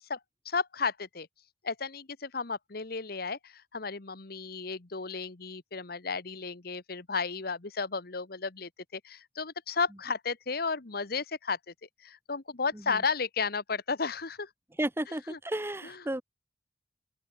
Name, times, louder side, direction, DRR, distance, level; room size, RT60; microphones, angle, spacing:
voice 1, 0.4-1.3 1.6-11.7 12.0-14.5 15.3-15.4 15.8-16.0, left 4 dB, 60° left, 1.4 m, -33 dB
voice 2, 14.8-16.2, right 1 dB, 15° right, 1.2 m, -33 dB
open air
head